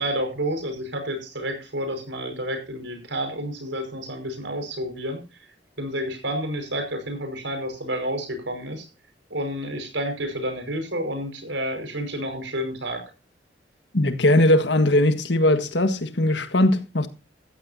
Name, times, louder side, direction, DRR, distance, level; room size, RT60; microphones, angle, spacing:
voice 1, 0.0-5.2 5.8-8.9 9.3-13.0, equal, 85° right, 5.5 m, -30 dB
voice 2, 13.9-17.1, left 1 dB, 70° left, 1.7 m, -19 dB
15.0 x 14.5 x 2.8 m
head